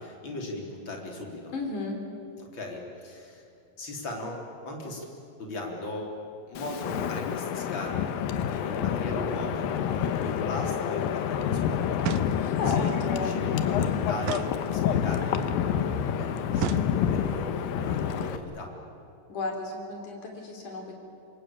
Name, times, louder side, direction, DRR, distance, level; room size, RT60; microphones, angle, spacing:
voice 1, 0.0-1.5 2.5-3.4 3.8-5.1 5.4-6.2 6.5-7.9 8.5-18.7, left 1 dB, 35° left, 0 dB, 4.2 m, -38 dB
voice 2, 1.5-2.0 12.3-13.4 19.3-20.9, left 2 dB, 60° left, 2 dB, 5.2 m, -34 dB
Wind, 6.6-18.4, left 9 dB, 85° left, 2.8 m, -28 dB
sound 1, 12.0-12.7 14.2-15.2 16.6-17.4, right 13 dB, 85° right, 2.5 m, -35 dB
26.5 x 22.0 x 8.8 m, 2.6 s
omnidirectional pair, 4.1 m